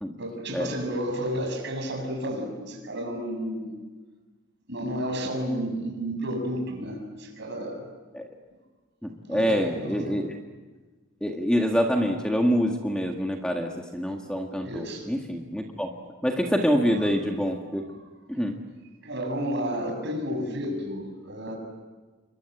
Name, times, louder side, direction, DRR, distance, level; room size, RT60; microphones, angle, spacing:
voice 1, 0.2-3.7 4.7-7.9 9.3-10.2 14.6-15.1 19.0-21.6, equal, 55° right, 3 dB, 7.1 m, -31 dB
voice 2, 9.0-10.3 11.2-15.9 16.2-17.8 18.3-18.6, equal, 5° left, 1 dB, 1.8 m, -26 dB
28.5 x 24.0 x 8.1 m, 1.3 s
head